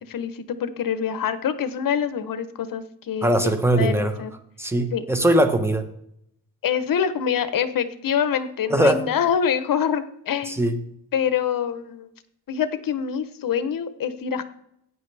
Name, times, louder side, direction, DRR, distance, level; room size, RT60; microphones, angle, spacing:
voice 1, 0.1-4.3 4.9-5.1 6.6-10.6 11.1-12.1 12.5-14.4, left 8 dB, 55° left, 12 dB, 0.9 m, -25 dB
voice 2, 3.2-4.1 4.6-5.8 8.7-9.0 10.5-10.8, right 1 dB, 5° right, 7 dB, 1.0 m, -20 dB
16.0 x 9.4 x 3.4 m, 0.75 s
cardioid pair, 125°, 39 cm